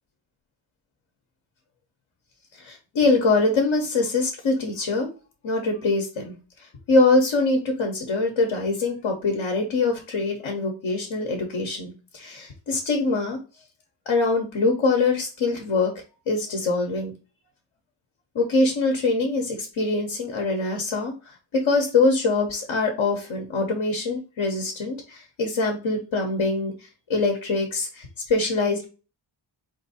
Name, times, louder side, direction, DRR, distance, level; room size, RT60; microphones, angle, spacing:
voice 1, 2.6-5.1 5.4-6.3 6.6-13.4 14.1-15.9 16.3-17.1 18.3-26.7 27.1-28.9, left 3 dB, 85° left, 2 dB, 1.2 m, -23 dB
4.4 x 2.7 x 4.2 m, 0.33 s
cardioid pair, 80°, 46 cm